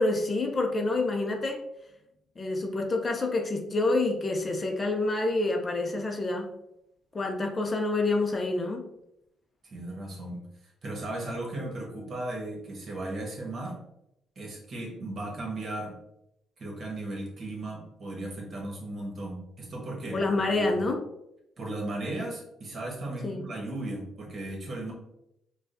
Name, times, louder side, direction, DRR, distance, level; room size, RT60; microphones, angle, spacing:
voice 1, 0.0-1.6 2.4-6.5 7.1-8.9 20.1-21.0 23.2-23.5, left 2 dB, 30° left, 3 dB, 0.6 m, -27 dB
voice 2, 9.6-10.4 10.8-13.8 14.3-16.0 16.6-20.9 21.6-24.9, right 1 dB, 45° right, -1 dB, 1.4 m, -36 dB
4.5 x 2.4 x 2.7 m, 0.81 s
cardioid pair, 90°, 0 cm